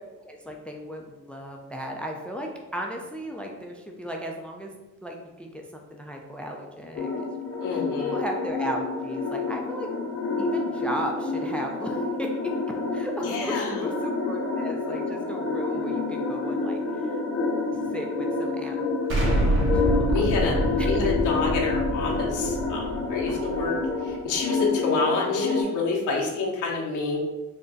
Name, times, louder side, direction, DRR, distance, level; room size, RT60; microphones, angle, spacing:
voice 1, 0.2-4.7 5.0-7.8 8.1-9.9 10.4-12.5 12.9-17.2 17.7-19.5 19.7-20.9 23.3-23.9, equal, 5° left, 1 dB, 0.4 m, -36 dB
sound 1, 7.0-25.6, left 3 dB, 50° left, 0.8 m, -28 dB
voice 2, 7.6-8.2 13.2-13.8 20.1-20.6 20.9-23.8 24.0-27.2, left 4 dB, 80° left, -2 dB, 0.9 m, -28 dB
Explosion, 19.1-23.9, right 1 dB, 40° right, 1.2 m, -26 dB
3.7 x 2.2 x 3.9 m, 1.1 s
cardioid pair, 90°, 30 cm